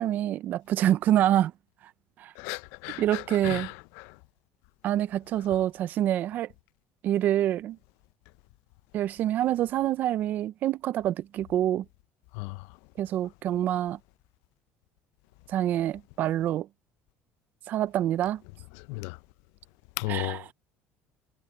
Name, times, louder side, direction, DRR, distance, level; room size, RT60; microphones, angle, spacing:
voice 1, 0.0-1.5 2.2-2.3 3.0-3.7 4.8-6.5 7.0-7.8 8.9-11.8 13.0-14.0 15.5-16.7 17.7-18.4 20.1-20.5, right 12 dB, 45° right, 0.4 m, -26 dB
voice 2, 2.4-3.0 3.5-3.6 12.4-12.5 18.9-19.1 20.0-20.5, left 24 dB, 85° left, 0.4 m, -33 dB
cardioid pair, 165°, 4 cm